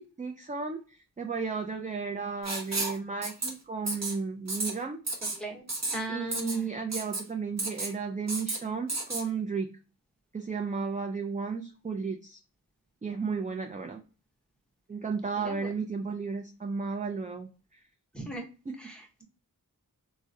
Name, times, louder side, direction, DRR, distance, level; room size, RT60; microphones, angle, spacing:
voice 1, 0.0-5.0 6.1-9.7 10.3-12.4 13.0-14.0 14.9-17.8 18.7-18.8, right 5 dB, 25° right, 3 dB, 0.3 m, -34 dB
Writing, 2.4-3.0 3.2-3.5 3.9-4.1 4.5-4.7 5.1-5.4 5.7-6.0 6.3-6.6 6.9-7.2 7.6-7.9 8.3-8.6 8.9-9.2, right 2 dB, 45° right, 0.9 m, -32 dB
voice 2, 5.3-5.6 5.9-6.6 15.4-15.7 18.1-18.4 18.8-19.2, right 2 dB, ahead, 1 dB, 0.9 m, -38 dB
3.5 x 2.1 x 2.6 m, 0.35 s
wide cardioid pair, 40°, 36 cm